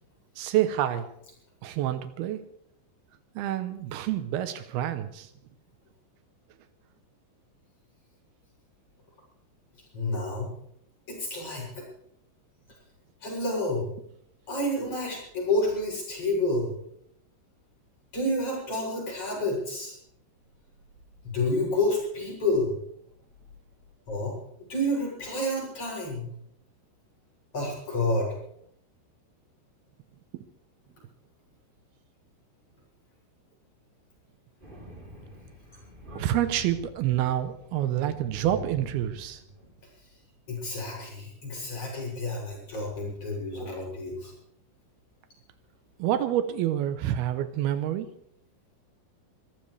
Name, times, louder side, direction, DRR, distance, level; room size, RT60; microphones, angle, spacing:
voice 1, 0.4-1.1 1.6-2.4 3.4-5.3 30.3-30.4 36.2-39.4 46.0-48.1, right 12 dB, 80° right, 10 dB, 2.2 m, -28 dB
voice 2, 9.9-10.5 11.1-11.8 13.2-13.9 14.5-16.7 18.1-20.0 21.3-22.7 24.1-26.3 27.5-28.4 40.5-44.3, left 1 dB, 30° left, -2 dB, 8.1 m, -29 dB
Thunder, 34.6-39.7, equal, 10° right, 3.1 m, -44 dB
25.0 x 15.5 x 3.3 m, 0.71 s
omnidirectional pair, 5.6 m